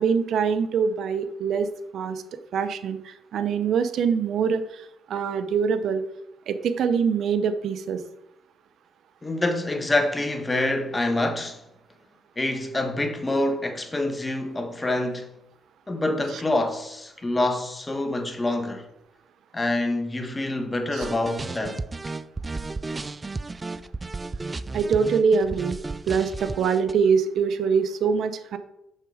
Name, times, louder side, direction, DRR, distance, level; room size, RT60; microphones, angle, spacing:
voice 1, 0.0-1.7 1.9-2.2 2.5-6.0 6.5-8.0 20.9-21.0 24.7-25.8 26.1-28.6, right 6 dB, 70° right, 0.7 m, -24 dB
voice 2, 9.2-11.6 12.4-15.3 15.9-18.8 19.5-22.2, left 2 dB, 20° left, 1.3 m, -26 dB
sound 1, 21.0-26.9, right 3 dB, 25° right, 0.4 m, -33 dB
6.6 x 6.0 x 4.9 m
supercardioid pair, 65°, 0 cm